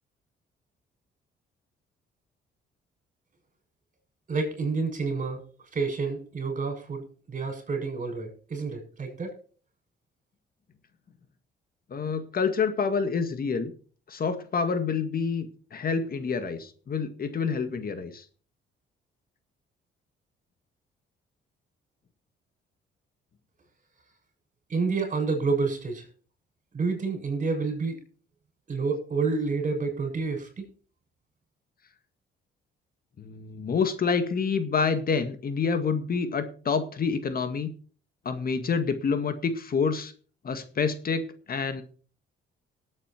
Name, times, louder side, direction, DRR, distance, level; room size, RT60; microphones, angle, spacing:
voice 1, 4.3-5.4 5.7-9.4 24.7-26.1 26.7-28.0 28.7-30.7, right 4 dB, 40° right, 5 dB, 7.2 m, -29 dB
voice 2, 11.9-13.7 14.1-18.3 33.2-37.7 38.3-40.1 40.4-41.8, left 5 dB, 50° left, 9 dB, 2.0 m, -28 dB
18.5 x 8.8 x 4.5 m, 0.41 s
cardioid pair, 90°, 20 cm